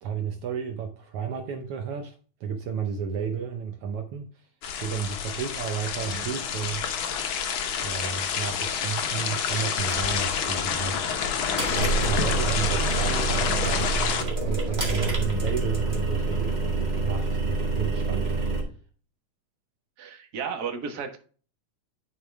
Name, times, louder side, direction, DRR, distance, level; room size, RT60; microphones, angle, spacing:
voice 1, 0.0-4.5 4.8-6.8 7.8-11.1 12.0-18.4, right 7 dB, 85° right, 1.2 m, -32 dB
sound 1, 4.6-14.2, left 7 dB, 90° left, 1.1 m, -28 dB
sound 2, 9.8-18.6, right 3 dB, 20° right, 1.6 m, -27 dB
voice 2, 11.4-11.8 20.0-21.2, right 6 dB, 50° right, 1.1 m, -34 dB
10.5 x 4.8 x 3.4 m
omnidirectional pair, 3.6 m